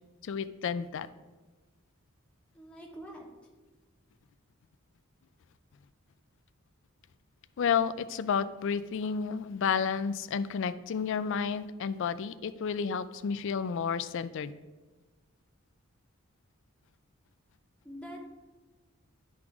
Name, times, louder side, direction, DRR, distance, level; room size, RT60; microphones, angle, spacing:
voice 1, 0.2-1.1 7.6-14.5, left 6 dB, 60° left, 14 dB, 0.4 m, -31 dB
voice 2, 2.5-3.3 17.8-18.2, equal, 5° left, -3 dB, 0.9 m, -44 dB
11.0 x 3.7 x 4.9 m, 1.3 s
head